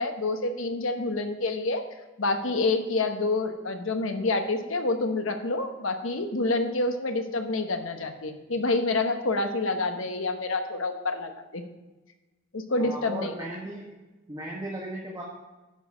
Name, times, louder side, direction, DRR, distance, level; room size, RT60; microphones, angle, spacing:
voice 1, 0.0-1.8 2.2-11.6 12.5-13.3, left 2 dB, 75° left, 6 dB, 1.1 m, -28 dB
voice 2, 12.8-14.0 14.3-15.2, right 1 dB, 20° right, -3 dB, 1.4 m, -36 dB
11.0 x 6.4 x 4.9 m, 1.1 s
head